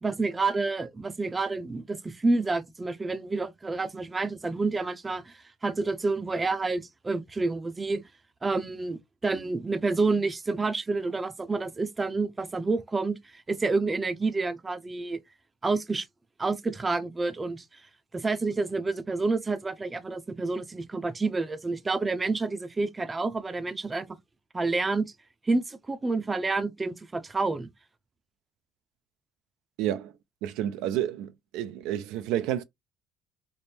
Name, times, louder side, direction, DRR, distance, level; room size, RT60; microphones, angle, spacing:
voice 1, 0.0-8.0 8.4-15.2 15.6-16.1 16.4-17.8 18.1-24.1 24.5-25.1 25.4-27.7, right 3 dB, 20° right, 0.6 m, -29 dB
voice 2, 29.8-30.1 30.4-32.6, right 11 dB, 80° right, 0.4 m, -30 dB
3.4 x 2.1 x 4.2 m
cardioid pair, 100°, 0 cm